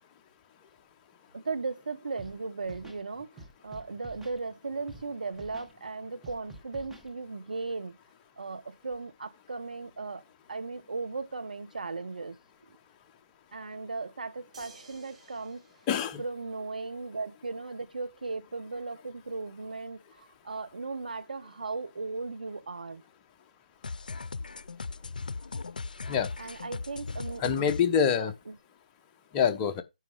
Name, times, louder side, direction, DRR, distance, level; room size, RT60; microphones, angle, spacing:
voice 1, 1.3-8.0 8.4-10.2 10.5-12.4 13.5-15.6 16.2-23.0 26.4-27.4 28.1-28.5, right 3 dB, 70° right, 1.3 m, -37 dB
Scratching (performance technique), 2.2-2.3 2.6-3.0 3.4-4.4 4.9-5.0 5.3-5.7 6.2-7.1, right 2 dB, 5° right, 1.1 m, -48 dB
sound 1, 14.5-17.0 18.7-18.8, right 3 dB, 45° right, 3.7 m, -55 dB
voice 2, 15.9-16.2 26.1-26.3 27.4-28.3 29.3-29.8, left 7 dB, 20° left, 0.9 m, -25 dB
sound 2, 23.8-27.8, left 4 dB, 70° left, 0.5 m, -38 dB
9.5 x 5.3 x 4.9 m
figure-of-eight pair, 150°, 5 cm